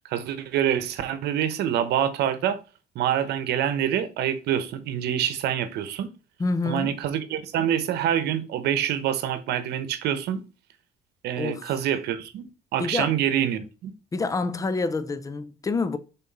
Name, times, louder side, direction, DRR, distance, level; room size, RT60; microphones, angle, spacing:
voice 1, 0.0-2.6 2.9-6.1 6.7-10.4 11.2-13.9, right 10 dB, 75° right, 0.9 m, -26 dB
voice 2, 6.4-6.9 11.4-11.7 12.8-13.1 14.1-16.0, left 3 dB, 20° left, 0.6 m, -27 dB
5.8 x 4.0 x 4.0 m
cardioid pair, 110°, 17 cm